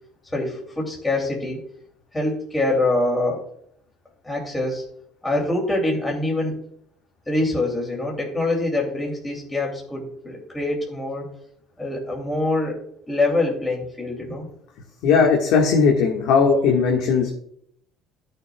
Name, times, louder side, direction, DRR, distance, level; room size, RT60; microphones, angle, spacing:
voice 1, 0.3-1.6 2.1-3.4 4.2-4.8 5.2-6.5 7.3-11.2 11.8-12.8 13.1-14.5, left 2 dB, 10° left, -1 dB, 2.6 m, -24 dB
voice 2, 15.0-17.3, left 5 dB, 75° left, 0 dB, 1.5 m, -18 dB
15.0 x 6.7 x 2.3 m, 0.68 s
cardioid pair, 130°, 0 cm